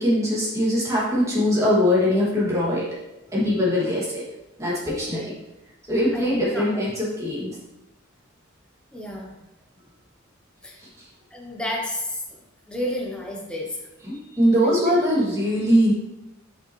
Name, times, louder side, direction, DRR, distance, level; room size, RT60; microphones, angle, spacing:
voice 1, 0.0-2.9 3.3-4.2 4.6-5.2 5.9-7.5 14.0-15.9, equal, 15° right, -7 dB, 2.1 m, -21 dB
voice 2, 4.8-5.3 6.1-6.7 8.9-9.3 10.6-10.8 11.3-12.4 12.7-13.8 14.6-14.8, left 1 dB, 5° left, -2 dB, 0.8 m, -31 dB
6.3 x 5.8 x 3.1 m, 0.95 s
head